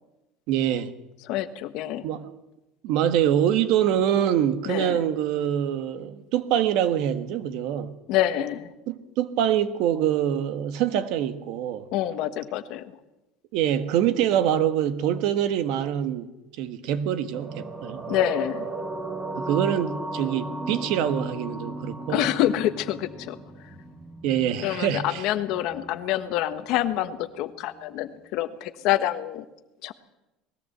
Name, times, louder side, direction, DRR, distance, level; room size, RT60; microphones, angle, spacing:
voice 1, 0.5-0.9 2.0-2.4 2.8-8.0 8.9-11.8 13.5-16.3 16.6-18.0 19.3-22.3 24.2-25.2, right 10 dB, 55° right, 1.5 m, -25 dB
voice 2, 1.2-2.1 4.7-5.0 8.1-8.7 11.9-13.0 18.1-18.7 22.1-23.4 24.6-29.4 29.8-29.9, left 13 dB, 50° left, 1.3 m, -27 dB
sound 1, 17.3-26.0 26.2-26.4, right 2 dB, 15° right, 1.8 m, -36 dB
20.0 x 16.5 x 8.0 m
cardioid pair, 175°, 0 cm